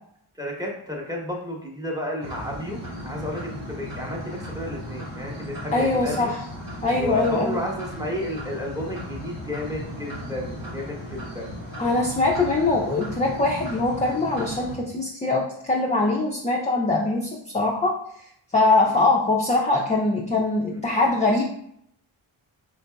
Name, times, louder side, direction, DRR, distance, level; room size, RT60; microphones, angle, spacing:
voice 1, 0.4-2.8 3.0-6.3 6.9-11.5 18.8-19.1 20.7-20.8, equal, 5° right, -1 dB, 1.0 m, -32 dB
sound 1, 2.2-14.8, equal, 90° right, 1.1 m, -36 dB
voice 2, 5.7-6.4 6.8-7.6 11.8-17.9 18.5-21.4, left 2 dB, 15° left, -2 dB, 0.4 m, -22 dB
3.8 x 2.7 x 2.2 m, 0.70 s
cardioid pair, 45°, 49 cm